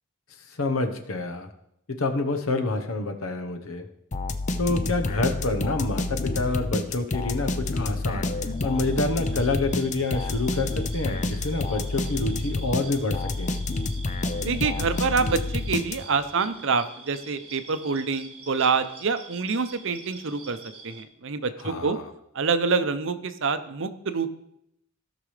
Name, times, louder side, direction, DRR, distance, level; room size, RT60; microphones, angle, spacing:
voice 1, 0.5-1.5 1.9-3.9 4.6-8.3 8.6-13.5 21.6-22.1, left 2 dB, 75° left, 6 dB, 1.1 m, -27 dB
sound 1, 4.1-16.3, left 2 dB, 35° left, 0.5 m, -29 dB
sound 2, 8.4-21.0, right 4 dB, 25° right, 1.0 m, -46 dB
voice 2, 14.4-20.6 20.8-22.0 22.3-24.3, right 4 dB, 60° right, 11 dB, 0.7 m, -26 dB
16.0 x 6.0 x 3.3 m, 0.78 s
head